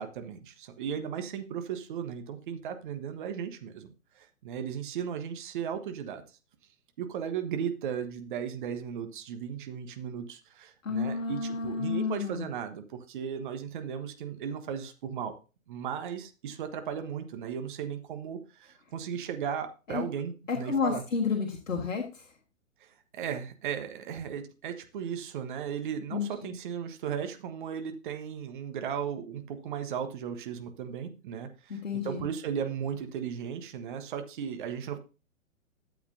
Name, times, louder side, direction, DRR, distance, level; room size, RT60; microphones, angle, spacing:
voice 1, 0.0-6.2 7.0-15.3 15.7-21.0 22.8-22.9 23.1-35.0, right 8 dB, 35° right, 7 dB, 1.3 m, -36 dB
voice 2, 10.8-12.5 19.9-20.0 20.5-22.2 26.1-26.5 31.7-32.2, left 5 dB, 65° left, 1 dB, 1.7 m, -31 dB
12.5 x 7.9 x 2.7 m, 0.31 s
figure-of-eight pair, 120°, 41 cm